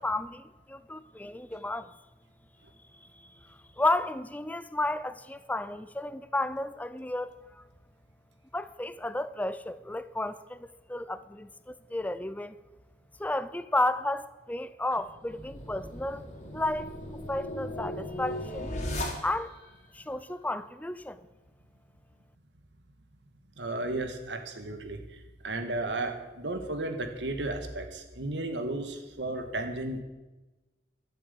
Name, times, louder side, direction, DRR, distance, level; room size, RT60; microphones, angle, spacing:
voice 1, 0.0-1.9 3.8-7.6 8.5-12.6 13.2-16.2 16.5-16.9 17.3-18.7 19.2-19.5 19.9-21.3, left 2 dB, 10° left, 0.4 m, -32 dB
sound 1, 15.1-19.7, left 1 dB, 40° left, 2.7 m, -37 dB
voice 2, 23.6-30.0, right 2 dB, 85° right, 1.8 m, -34 dB
13.5 x 7.7 x 8.3 m
head